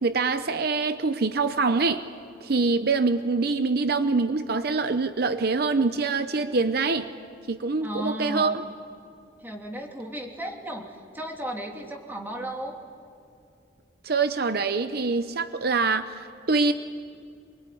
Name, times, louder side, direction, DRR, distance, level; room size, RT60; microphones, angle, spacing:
voice 1, 0.0-2.0 2.4-7.1 7.5-8.6 14.0-16.7, right 4 dB, 55° right, 10 dB, 0.8 m, -24 dB
voice 2, 7.8-8.6 9.4-12.7, right 1 dB, 10° right, 1 dB, 2.9 m, -35 dB
26.5 x 23.5 x 9.3 m, 2.5 s
head